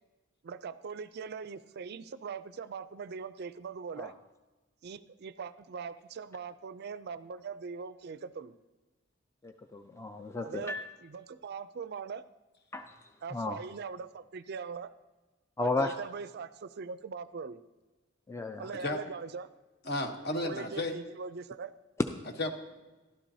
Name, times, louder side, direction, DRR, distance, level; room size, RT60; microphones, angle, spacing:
voice 1, 0.4-4.1 4.8-8.5 10.4-12.2 13.2-14.9 15.6-17.6 18.6-19.5 20.3-21.7, right 5 dB, 55° right, 14 dB, 0.4 m, -41 dB
voice 2, 9.4-10.8 12.7-12.9 13.3-13.6 15.6-15.9 18.3-18.7, left 2 dB, 15° left, 6 dB, 0.4 m, -34 dB
voice 3, 19.8-20.9 22.4-22.5, left 2 dB, 55° left, 5 dB, 1.1 m, -32 dB
13.0 x 12.0 x 2.7 m, 1.2 s
head